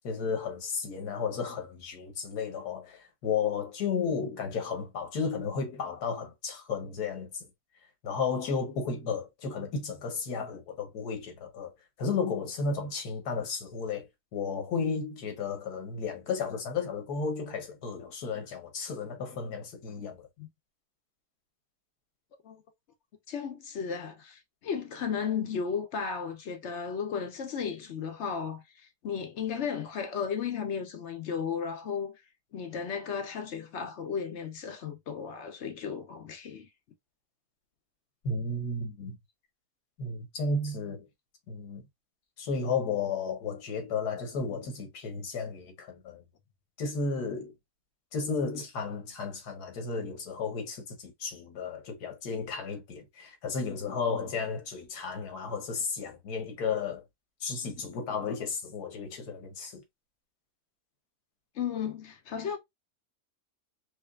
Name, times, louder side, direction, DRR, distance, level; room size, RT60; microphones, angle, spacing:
voice 1, 0.0-7.3 8.0-11.7 12.0-14.1 14.3-20.3 38.2-39.2 40.0-41.1 41.5-41.8 42.4-46.2 46.8-47.5 48.1-57.0 57.4-59.8, left 5 dB, 85° left, 1.6 m, -33 dB
voice 2, 23.3-32.2 32.5-36.7 61.5-62.6, left 6 dB, 60° left, 0.8 m, -34 dB
4.9 x 2.1 x 2.4 m
omnidirectional pair, 1.6 m